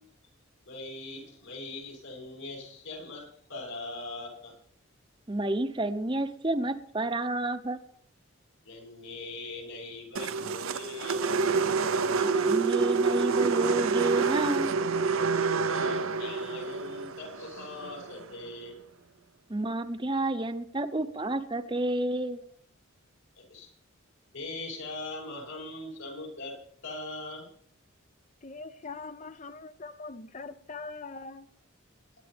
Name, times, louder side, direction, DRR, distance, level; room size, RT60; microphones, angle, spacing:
voice 1, 0.6-4.6 8.6-11.4 15.6-18.8 23.4-23.7 24.3-27.5, left 2 dB, 75° left, 6.4 m, -41 dB
voice 2, 5.3-7.8 12.2-14.8 19.5-22.4, right 2 dB, 20° right, 0.8 m, -30 dB
sound 1, 10.2-18.4, right 4 dB, 75° right, 0.7 m, -28 dB
voice 3, 28.4-31.5, left 4 dB, 35° left, 0.5 m, -42 dB
20.5 x 11.5 x 3.5 m
head